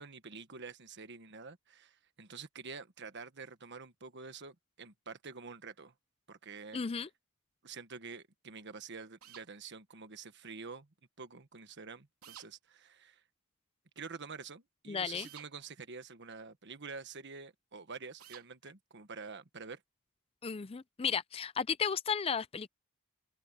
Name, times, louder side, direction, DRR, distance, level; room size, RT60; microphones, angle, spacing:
voice 1, 0.0-5.9 6.3-6.8 7.6-10.9 11.2-13.2 13.9-19.8, right 5 dB, 55° right, 1.4 m, -47 dB
voice 2, 6.7-7.1 14.9-15.3 20.4-22.7, left 6 dB, 25° left, 0.5 m, -34 dB
sound 1, 9.2-9.5 12.2-12.5 15.2-15.5 18.2-18.5, right 9 dB, 85° right, 3.2 m, -52 dB
open air
head